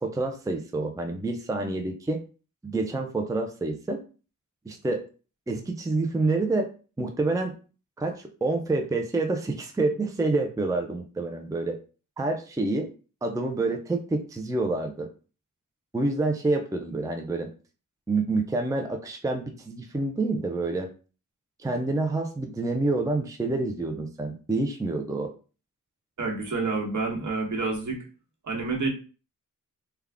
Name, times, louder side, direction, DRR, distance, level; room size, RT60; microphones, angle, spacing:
voice 1, 0.0-2.2 2.6-4.0 4.7-5.0 5.5-6.7 7.0-7.5 8.0-11.8 12.2-12.9 13.2-15.1 15.9-17.5 18.1-20.9 21.6-25.3, right 2 dB, 10° right, 4 dB, 0.5 m, -27 dB
voice 2, 26.2-28.0 28.4-28.9, right 3 dB, 60° right, 0 dB, 1.2 m, -28 dB
3.4 x 2.3 x 3.5 m, 0.35 s
wide cardioid pair, 85°, 33 cm